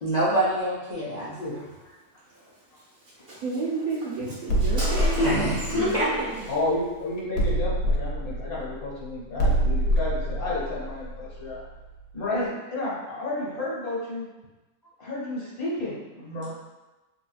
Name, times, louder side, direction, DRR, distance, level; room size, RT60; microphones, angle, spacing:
voice 1, 0.0-1.6 5.2-6.1, equal, 50° left, -10 dB, 0.5 m, -25 dB
voice 2, 1.0-1.6 6.5-11.6 12.1-14.3 15.0-16.5, left 2 dB, 70° left, -7 dB, 1.5 m, -31 dB
Car, 2.3-2.5 2.8-2.9 3.1-6.0 6.3-6.5, right 1 dB, 45° right, 0.9 m, -37 dB
voice 3, 3.4-6.5, right 4 dB, 70° right, -6 dB, 1.0 m, -32 dB
sound 1, 4.5-6.8 7.4-12.0, right 1 dB, 85° left, 1.3 m, -26 dB
3.8 x 2.5 x 2.4 m, 1.1 s
omnidirectional pair, 1.7 m